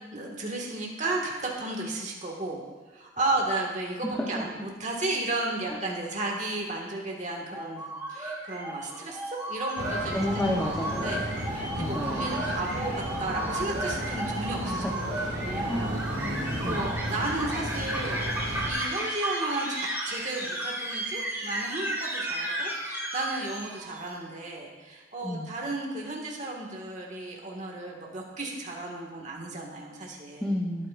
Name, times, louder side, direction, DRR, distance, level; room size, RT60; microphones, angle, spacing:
voice 1, 0.1-2.6 2.9-10.2 10.9-15.0 15.4-30.5, right 2 dB, 40° right, -1 dB, 1.8 m, -34 dB
sound 1, 7.5-24.0, right 1 dB, 10° right, 1.6 m, -34 dB
sound 2, 9.8-18.7, right 1 dB, 70° right, 2.2 m, -33 dB
voice 2, 10.1-11.3 11.8-12.2 14.6-14.9 15.7-16.0 16.6-16.8 25.2-25.5 30.4-30.9, left 1 dB, 5° left, -3 dB, 0.8 m, -30 dB
19.0 x 9.0 x 2.5 m, 1.3 s
head